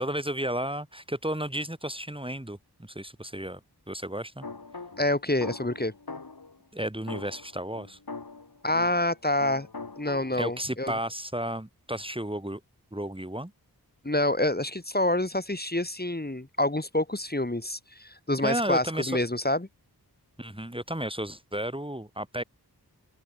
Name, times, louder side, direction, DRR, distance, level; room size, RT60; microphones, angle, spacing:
voice 1, 0.0-3.6 3.9-4.5 6.7-8.0 10.4-12.6 12.9-13.5 18.4-19.2 20.4-22.4, right 1 dB, 15° right, 3.5 m, -33 dB
sound 1, 4.4-6.6 7.1-9.2 9.4-10.6, left 3 dB, 65° left, 5.3 m, -41 dB
voice 2, 5.0-5.9 8.6-9.7 10.0-10.9 14.0-19.7, left 1 dB, 25° left, 4.1 m, -27 dB
open air
wide cardioid pair, 50°, 39 cm